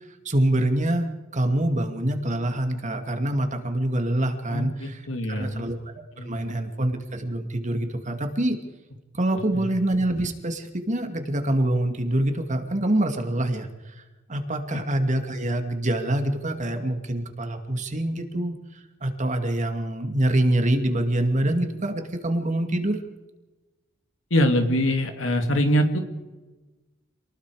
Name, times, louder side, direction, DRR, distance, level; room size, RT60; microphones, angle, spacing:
voice 1, 0.2-5.0 5.3-5.7 6.2-8.6 9.1-14.0 14.3-23.0, right 1 dB, 40° right, 6 dB, 2.3 m, -25 dB
voice 2, 4.5-5.6 6.2-6.4 9.5-9.7 24.3-26.0, equal, 70° left, 5 dB, 2.9 m, -23 dB
27.5 x 20.0 x 4.9 m, 1.2 s
head